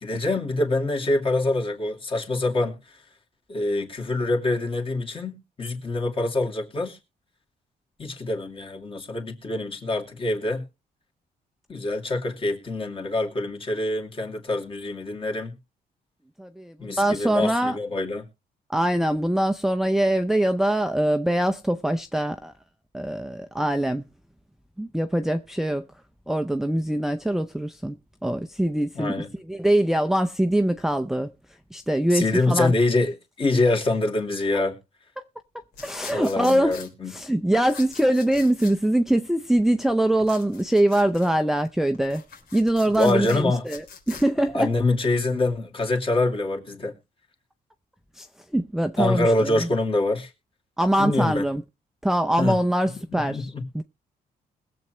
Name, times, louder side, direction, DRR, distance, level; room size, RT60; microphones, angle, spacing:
voice 1, 0.0-3.0 3.5-7.0 8.0-10.6 11.7-15.6 16.8-18.3 28.9-29.3 32.1-34.8 36.1-37.1 42.9-43.7 44.5-46.9 49.0-50.3 51.0-51.5 52.4-52.6 53.2-53.6, left 2 dB, 35° left, 2.6 m, -25 dB
voice 2, 16.4-17.8 18.7-22.5 22.9-24.1 24.8-25.9 26.3-28.0 28.2-29.1 29.5-31.3 31.7-32.7 34.5-34.6 35.8-36.8 37.1-42.2 42.5-44.7 48.2-48.3 48.5-49.7 50.8-51.6 52.0-53.8, right 1 dB, ahead, 0.6 m, -23 dB
sound 1, 35.7-36.9 37.7-38.7 40.2-41.3 41.9-44.2, left 6 dB, 90° left, 3.4 m, -43 dB
21.0 x 7.8 x 3.1 m
cardioid pair, 120°, 16 cm